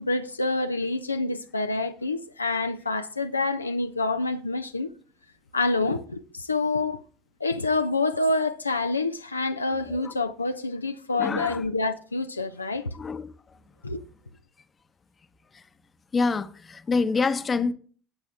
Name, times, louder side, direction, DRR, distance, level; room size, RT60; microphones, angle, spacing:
voice 1, 0.0-4.9 5.5-7.0 7.4-12.9 13.8-14.0, left 3 dB, 90° left, 0.4 m, -27 dB
voice 2, 11.1-11.7 12.9-13.3 15.5-15.6 16.1-17.7, left 4 dB, 30° left, 0.8 m, -27 dB
16.5 x 8.3 x 2.3 m
figure-of-eight pair, 65°, 0 cm